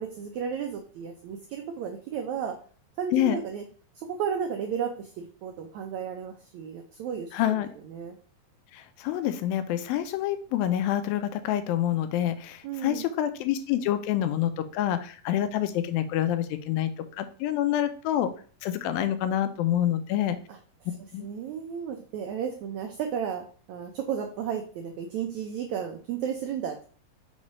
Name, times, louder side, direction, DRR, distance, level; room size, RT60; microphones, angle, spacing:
voice 1, 0.0-2.6 3.0-3.6 4.0-7.6 7.9-8.2 12.6-13.0 20.5-20.6 21.2-26.9, right 7 dB, 90° right, 3 dB, 1.6 m, -33 dB
voice 2, 7.3-7.7 8.7-18.3 18.6-20.4 21.1-21.3, left 11 dB, 85° left, 10 dB, 2.4 m, -27 dB
5.8 x 3.1 x 5.4 m, 0.42 s
omnidirectional pair, 4.1 m